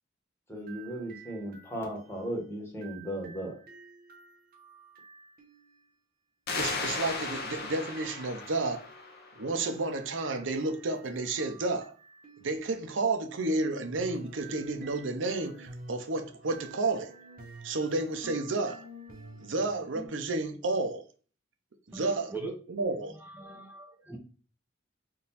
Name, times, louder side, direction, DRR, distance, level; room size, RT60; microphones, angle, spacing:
voice 1, 0.5-3.6, right 1 dB, 15° left, 1.2 m, -36 dB
sound 1, 0.5-5.8 7.1-12.9 13.9-20.1, right 2 dB, 50° right, 0.9 m, -51 dB
sound 2, 6.5-9.8, left 3 dB, 55° left, 0.7 m, -36 dB
voice 2, 6.6-8.9 9.4-11.9 12.4-17.1 17.6-18.9 19.4-21.0 21.9-23.1, right 2 dB, 70° right, 0.7 m, -31 dB
voice 3, 21.9-22.5 23.1-24.2, right 3 dB, 10° right, 0.5 m, -42 dB
3.8 x 2.6 x 4.0 m
head